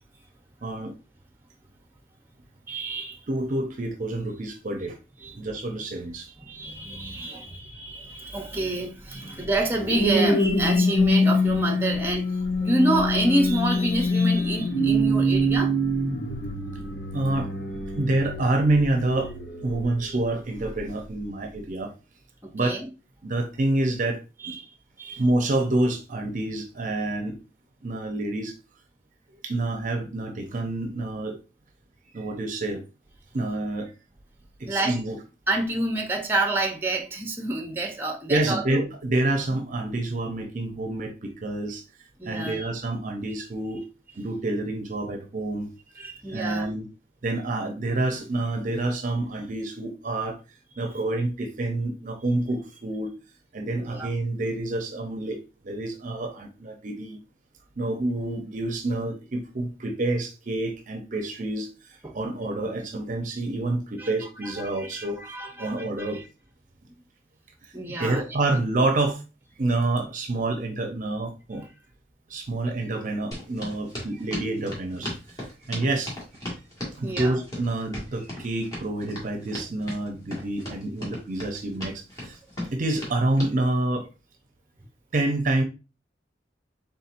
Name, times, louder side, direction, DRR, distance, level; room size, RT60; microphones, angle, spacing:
voice 1, 0.6-0.9 3.3-5.0 5.3-6.3 7.3-7.4 17.1-17.5 18.0-19.3 19.6-21.9 22.5-22.8 23.2-24.6 25.2-27.4 27.8-28.5 29.3-31.4 32.1-32.8 33.3-33.9 34.6-35.2 38.3-41.8 42.2-43.8 44.1-45.7 46.3-46.9 47.2-50.4 50.8-53.1 53.5-55.4 55.6-57.2 57.8-65.2 65.6-66.2 67.9-69.2 69.6-71.7 72.3-76.1 77.0-82.4 82.7-84.1 85.1-85.6, right 2 dB, 45° right, 0.6 m, -28 dB
voice 2, 2.7-3.2 5.2-5.4 6.4-12.2 12.6-15.7 22.4-22.9 24.4-24.7 25.0-25.2 34.7-35.0 35.5-38.8 42.2-42.7 46.0-46.7 53.8-54.1 62.0-62.2 62.6-62.7 64.0-66.2 67.7-68.2 71.5-71.6 77.0-77.4, right 1 dB, 15° right, 0.7 m, -28 dB
sound 1, 9.5-20.0 20.6-20.9, left 1 dB, 90° left, 1.1 m, -25 dB
sound 2, 73.3-83.5, left 1 dB, 20° left, 1.7 m, -36 dB
4.2 x 3.6 x 2.5 m
head